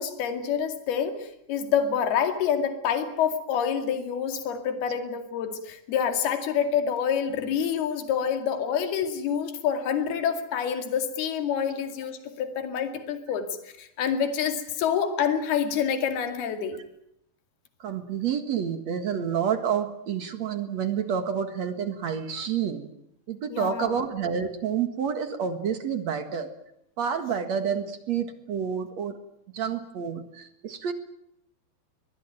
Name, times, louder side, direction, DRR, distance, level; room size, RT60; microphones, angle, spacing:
voice 1, 0.0-16.8 23.5-24.0, left 8 dB, 75° left, 7 dB, 4.2 m, -27 dB
voice 2, 17.8-22.9 23.3-26.5 27.0-29.2 29.5-30.9, right 7 dB, 55° right, 8 dB, 2.3 m, -29 dB
23.0 x 21.5 x 9.2 m, 0.77 s
omnidirectional pair, 4.6 m